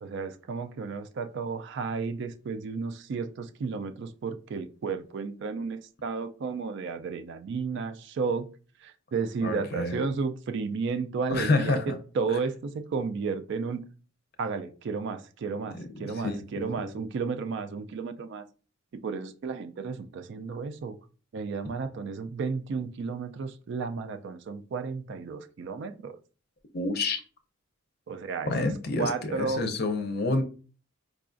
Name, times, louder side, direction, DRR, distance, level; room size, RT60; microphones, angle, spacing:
voice 1, 0.0-8.5 8.8-13.8 14.4-18.5 18.9-21.0 21.3-26.2 28.1-28.5 29.0-29.7, right 4 dB, 55° right, 0.3 m, -33 dB
voice 2, 9.4-9.9 11.3-12.0 15.7-16.9 26.7-27.2 28.5-30.4, left 2 dB, 50° left, 0.5 m, -28 dB
4.8 x 2.3 x 2.5 m
head